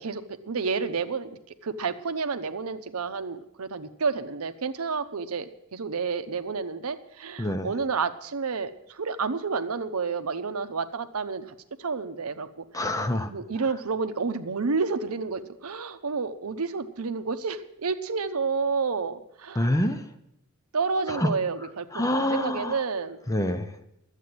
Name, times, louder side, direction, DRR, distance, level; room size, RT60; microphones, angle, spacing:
voice 1, 0.0-11.5 11.8-12.7 13.3-19.7 20.7-23.2, right 4 dB, 85° right, 10 dB, 0.8 m, -30 dB
voice 2, 12.7-13.3 19.6-20.0 21.1-21.3 21.9-22.8 23.3-23.7, left 1 dB, 15° left, 8 dB, 0.7 m, -26 dB
12.0 x 8.3 x 7.7 m, 0.80 s
head